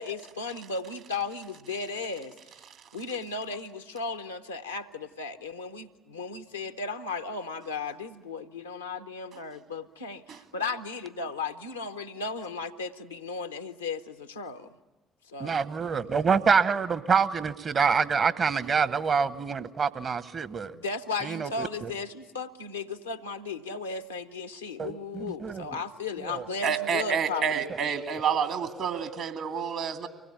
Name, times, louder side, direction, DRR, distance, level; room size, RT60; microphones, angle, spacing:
voice 1, 0.0-2.3 2.9-14.7 15.3-15.6 20.7-27.7, left 4 dB, 90° left, 7 dB, 0.8 m, -35 dB
voice 2, 15.4-20.7 21.2-21.9 24.8-25.8 26.2-26.5, right 5 dB, 45° right, 14 dB, 1.1 m, -26 dB
voice 3, 26.6-30.1, right 7 dB, 60° right, 7 dB, 2.1 m, -29 dB
24.5 x 19.0 x 9.7 m, 1.2 s
figure-of-eight pair, 45°, 0 cm